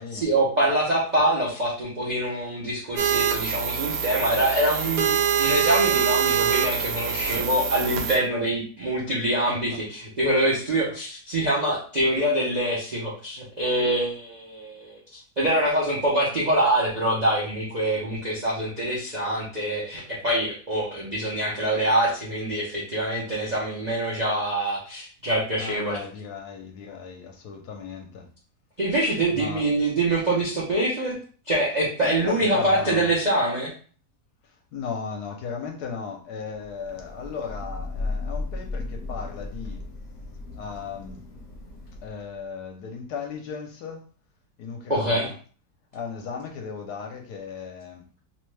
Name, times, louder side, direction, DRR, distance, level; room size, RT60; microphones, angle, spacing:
voice 1, 0.0-26.0 28.8-31.2 31.5-33.7 44.9-45.3, right 1 dB, 55° right, -6 dB, 0.4 m, -25 dB
sound 1, 3.0-8.2, right 8 dB, 85° right, 1.2 m, -24 dB
voice 2, 9.5-9.8 25.6-28.3 29.3-29.7 32.0-33.1 34.4-39.8 40.5-41.2 42.0-44.1 44.6-45.3 45.9-48.0, left 5 dB, 75° left, 3 dB, 1.2 m, -36 dB
Thunder / Rain, 36.6-42.4, left 3 dB, 50° left, 0.9 m, -35 dB
3.0 x 2.1 x 3.1 m, 0.41 s
omnidirectional pair, 1.8 m